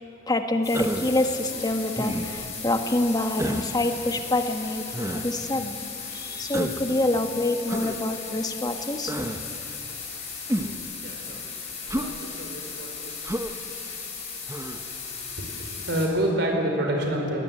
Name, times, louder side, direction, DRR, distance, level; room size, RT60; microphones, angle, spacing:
voice 1, 0.3-5.8 6.1-9.3, left 2 dB, 20° left, 6 dB, 1.5 m, -26 dB
sound 1, 0.6-16.1, left 5 dB, 35° left, 5.0 m, -37 dB
Human voice, 0.7-1.2 2.0-2.5 3.4-3.7 4.9-5.3 6.5-6.9 7.7-8.0 9.1-9.4 10.5-10.9 11.9-12.1 13.2-13.5 14.5-14.8, right 1 dB, 15° right, 1.1 m, -30 dB
voice 2, 11.0-11.4 11.9-13.3 14.5-14.6 15.3-17.4, right 1 dB, 65° right, 1 dB, 4.8 m, -28 dB
21.5 x 18.5 x 9.2 m, 2.8 s
head